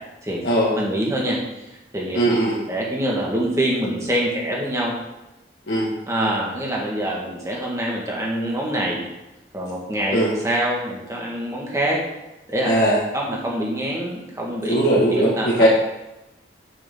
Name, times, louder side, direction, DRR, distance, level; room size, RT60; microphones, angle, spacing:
voice 1, 0.8-1.4 1.9-2.2 2.7-4.9 6.1-9.1 9.5-12.0 12.5-12.7 13.1-14.8 15.1-15.5, right 1 dB, 15° right, -3 dB, 1.8 m, -25 dB
voice 2, 2.1-2.5 5.7-5.9 10.1-10.3 12.7-13.0 14.6-15.7, right 1 dB, 65° left, -8 dB, 1.7 m, -19 dB
9.0 x 6.8 x 3.8 m, 0.96 s
head